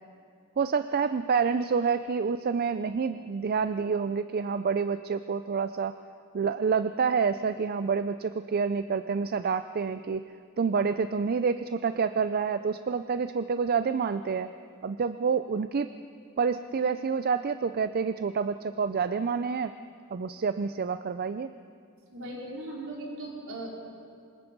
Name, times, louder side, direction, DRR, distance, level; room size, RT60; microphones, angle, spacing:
voice 1, 0.6-6.0 6.3-10.2 10.6-14.5 14.8-15.9 16.4-19.7 20.1-21.5, right 5 dB, 45° right, 12 dB, 0.4 m, -28 dB
voice 2, 22.1-23.7, right 1 dB, 65° right, -2 dB, 4.4 m, -38 dB
25.0 x 20.5 x 5.3 m, 2.3 s
head